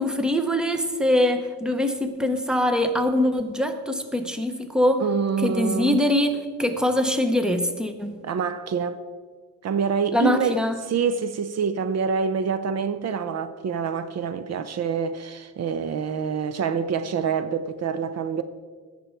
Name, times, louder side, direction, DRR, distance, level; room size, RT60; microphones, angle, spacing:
voice 1, 0.0-5.0 5.4-8.2 10.1-10.8, left 1 dB, ahead, 0.8 m, -23 dB
voice 2, 5.0-6.0 8.2-9.0 9.6-18.4, right 6 dB, 55° right, 0.6 m, -26 dB
16.5 x 6.9 x 4.5 m
cardioid pair, 150°, 31 cm